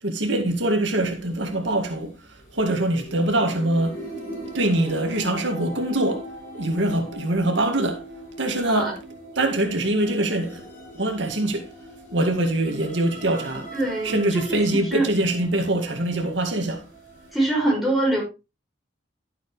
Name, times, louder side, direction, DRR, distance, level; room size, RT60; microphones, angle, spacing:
voice 1, 0.0-2.1 2.5-4.0 4.5-6.3 6.5-8.0 8.4-8.9 9.4-10.6 11.0-11.7 12.1-13.7 14.0-16.8, right 1 dB, 80° right, 2.1 m, -23 dB
sound 1, 0.8-17.4, right 1 dB, 40° left, 7.0 m, -40 dB
voice 2, 13.7-15.1 17.3-18.2, right 1 dB, ahead, 5.8 m, -24 dB
12.0 x 8.2 x 3.2 m
head